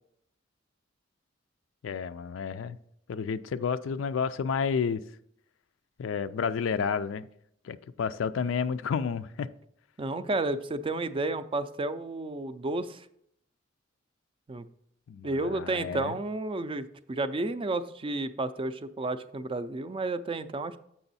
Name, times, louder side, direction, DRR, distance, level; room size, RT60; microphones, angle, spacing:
voice 1, 1.8-2.8 3.1-5.0 6.0-7.3 7.6-9.5 15.1-16.1, left 6 dB, 85° left, 13 dB, 0.4 m, -30 dB
voice 2, 10.0-13.1 14.5-14.7 15.2-20.8, right 2 dB, 25° right, 12 dB, 0.4 m, -31 dB
6.9 x 6.0 x 4.1 m, 0.72 s
head